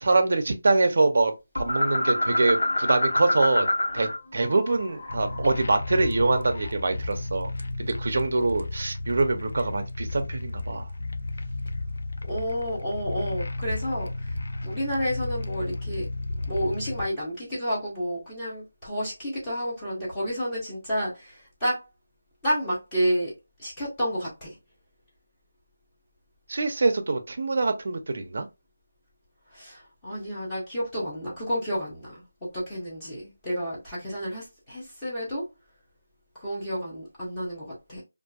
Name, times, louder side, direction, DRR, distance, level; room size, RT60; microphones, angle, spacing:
voice 1, 0.0-3.7 3.9-7.5 7.8-10.9 26.5-28.5, right 3 dB, 50° right, 0.5 m, -24 dB
sound 1, 1.6-4.2 4.4-6.7, left 1 dB, 85° left, 1.3 m, -27 dB
sound 2, 5.1-17.1, left 2 dB, 70° left, 0.4 m, -33 dB
voice 2, 12.3-14.3 14.6-16.1 16.5-21.8 22.4-23.3 23.6-24.5 29.5-35.4 36.4-38.0, equal, 10° left, 0.8 m, -30 dB
2.6 x 2.5 x 2.3 m
figure-of-eight pair, 175°, 0 cm